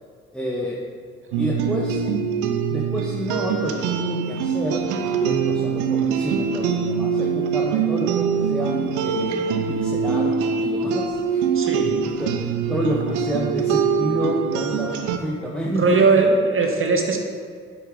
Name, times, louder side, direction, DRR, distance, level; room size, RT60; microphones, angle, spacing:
voice 1, 0.3-0.8 1.4-2.0 2.7-10.3 10.6-11.4 12.0-16.1, equal, 5° left, -3 dB, 1.4 m, -29 dB
sound 1, 1.3-15.2, right 6 dB, 70° right, 0.7 m, -23 dB
voice 2, 11.5-11.9 15.7-17.2, right 4 dB, 40° right, 3 dB, 1.6 m, -19 dB
9.2 x 8.5 x 3.7 m, 2.2 s
hypercardioid pair, 40°, 31 cm